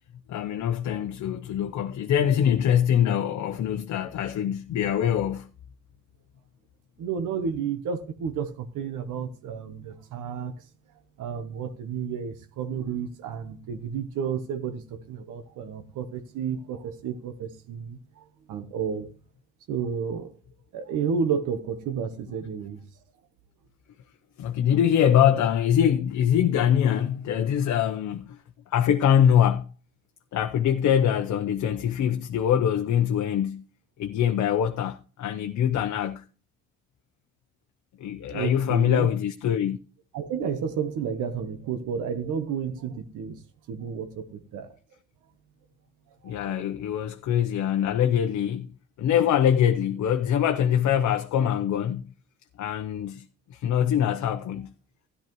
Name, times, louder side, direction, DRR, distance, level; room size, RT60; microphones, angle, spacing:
voice 1, 0.3-5.5 24.4-28.4 28.7-29.7 30.3-33.6 34.0-36.2 38.0-39.8 46.2-48.7 49.0-52.1 52.6-53.2 53.5-54.7, left 9 dB, 70° left, 0.7 m, -23 dB
voice 2, 7.0-10.5 11.2-19.1 19.7-20.3 20.7-22.9 38.3-39.1 40.1-43.4 43.7-44.8 46.2-46.6, right 6 dB, 85° right, 1.1 m, -31 dB
13.5 x 11.0 x 3.0 m
cardioid pair, 90°, 30 cm